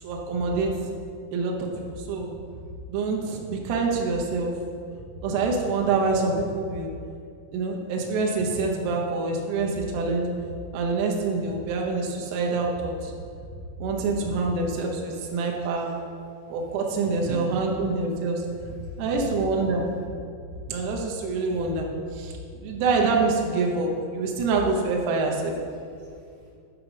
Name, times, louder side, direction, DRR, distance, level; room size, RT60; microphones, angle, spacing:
voice 1, 0.0-0.9 1.3-2.3 2.9-4.5 5.2-6.9 7.5-10.3 10.7-13.1 13.8-15.9 16.5-20.0 20.7-22.3 22.6-25.5, right 3 dB, 85° right, 0 dB, 3.8 m, -26 dB
voice 2, 18.8-19.4 25.7-26.5, right 3 dB, 70° right, -6 dB, 3.9 m, -44 dB
11.0 x 3.9 x 5.9 m, 2.3 s
omnidirectional pair, 6.0 m